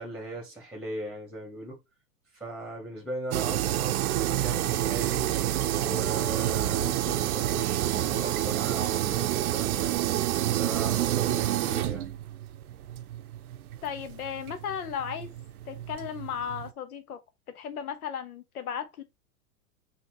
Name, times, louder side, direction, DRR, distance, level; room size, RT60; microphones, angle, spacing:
voice 1, 0.0-1.8 2.3-5.3 5.7-9.9 10.4-12.1, right 1 dB, ahead, 1.3 m, -38 dB
sound 1, 3.3-16.7, right 13 dB, 80° right, 0.6 m, -28 dB
voice 2, 13.8-15.3 15.7-17.2 17.5-19.0, left 8 dB, 75° left, 1.1 m, -35 dB
5.7 x 2.8 x 3.0 m
hypercardioid pair, 115°, 43 cm